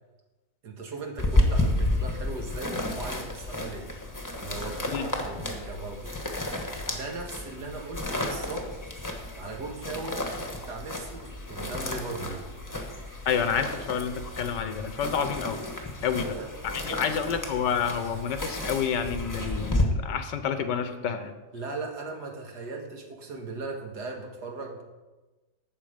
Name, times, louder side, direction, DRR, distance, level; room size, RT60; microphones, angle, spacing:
voice 1, 0.6-3.9 4.4-6.1 6.9-8.7 9.3-12.5 16.2-16.5 16.9-17.0 21.5-24.8, right 3 dB, 70° right, 1 dB, 2.2 m, -38 dB
sound 1, 1.2-19.8, left 1 dB, 15° left, 1.1 m, -32 dB
voice 2, 13.2-15.6 16.0-16.2 16.6-21.3, left 7 dB, 90° left, 9 dB, 1.6 m, -29 dB
12.0 x 7.9 x 5.1 m, 1.2 s
omnidirectional pair, 1.8 m